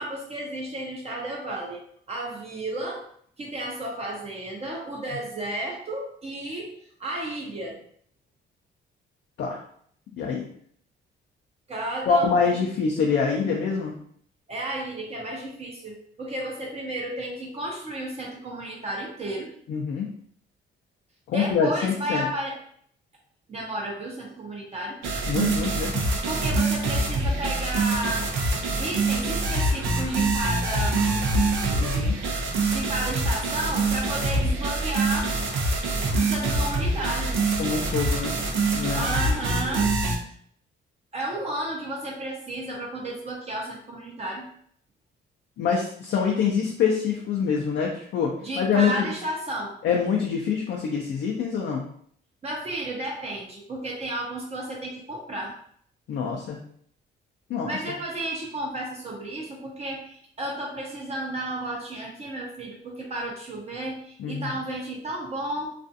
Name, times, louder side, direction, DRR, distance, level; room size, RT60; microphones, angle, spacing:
voice 1, 0.0-1.8 2.1-3.0 3.4-7.8 11.7-12.5 14.5-19.5 21.3-22.6 23.5-25.0 26.3-28.3 28.8-31.0 32.7-35.3 36.2-37.4 38.9-39.9 41.1-44.5 48.4-49.7 52.4-55.5 57.6-65.7, right 1 dB, 30° right, -2 dB, 0.6 m, -32 dB
voice 2, 12.1-13.9 19.7-20.1 21.3-22.3 25.3-26.0 31.8-32.1 37.6-38.3 38.7-39.1 45.6-49.1 49.8-51.9 56.1-56.6 57.5-57.8 64.2-64.5, left 6 dB, 65° left, 0 dB, 0.5 m, -25 dB
sound 1, 25.0-40.2, right 2 dB, 85° right, 0.6 m, -25 dB
2.5 x 2.3 x 2.6 m, 0.62 s
cardioid pair, 90°, 20 cm